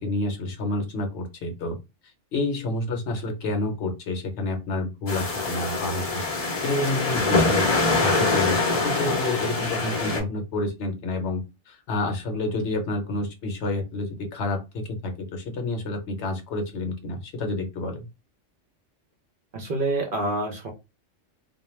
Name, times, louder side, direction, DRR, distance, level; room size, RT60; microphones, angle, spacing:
voice 1, 0.0-1.8 2.3-18.1, left 2 dB, 65° left, 4 dB, 0.9 m, -29 dB
sound 1, 5.1-10.2, left 3 dB, 40° left, 0.6 m, -24 dB
voice 2, 19.5-20.7, right 2 dB, 55° right, 3 dB, 0.7 m, -27 dB
2.2 x 2.2 x 3.0 m, 0.25 s
omnidirectional pair, 1.3 m